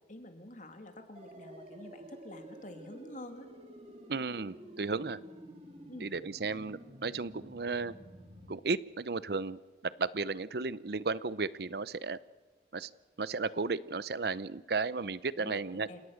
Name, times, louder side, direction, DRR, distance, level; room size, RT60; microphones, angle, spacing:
voice 1, 0.1-3.5 5.9-6.1 15.4-16.0, left 1 dB, 45° left, 6 dB, 2.7 m, -48 dB
sound 1, 1.1-8.5, equal, 35° right, 3.2 m, -50 dB
voice 2, 4.1-5.2 6.0-7.9 8.5-12.2 12.7-12.9 13.2-15.9, right 4 dB, 60° right, 18 dB, 0.7 m, -34 dB
29.0 x 18.0 x 6.5 m, 1.3 s
head